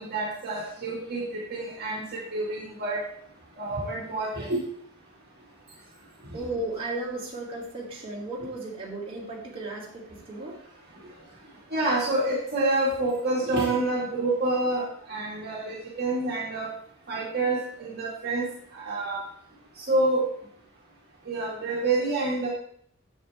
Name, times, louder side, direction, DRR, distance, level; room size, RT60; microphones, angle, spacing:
voice 1, 0.0-3.0 3.6-4.6 11.7-16.7 17.1-18.5 18.7-19.2 19.8-20.2 21.3-22.5, right 2 dB, 50° right, -5 dB, 2.0 m, -27 dB
voice 2, 6.3-10.6, right 2 dB, 25° right, -5 dB, 3.0 m, -35 dB
9.3 x 8.1 x 3.5 m, 0.64 s
head